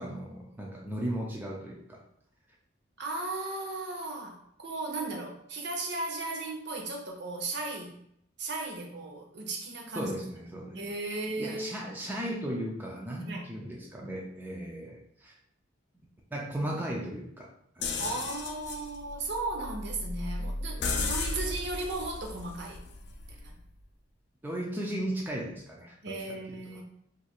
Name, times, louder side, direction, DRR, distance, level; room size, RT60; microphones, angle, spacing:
voice 1, 0.0-2.0 9.9-10.8 11.4-15.3 16.3-18.1 20.8-21.0 24.4-26.8, right 1 dB, 10° right, -2 dB, 0.3 m, -36 dB
voice 2, 3.0-8.0 8.4-10.2 10.7-11.8 13.3-13.5 18.0-22.8 23.4-23.5 26.0-26.8, right 2 dB, 55° right, 2 dB, 0.6 m, -36 dB
sound 1, 17.8-23.6, left 3 dB, 55° left, 0.4 m, -35 dB
2.5 x 2.4 x 4.1 m, 0.71 s
head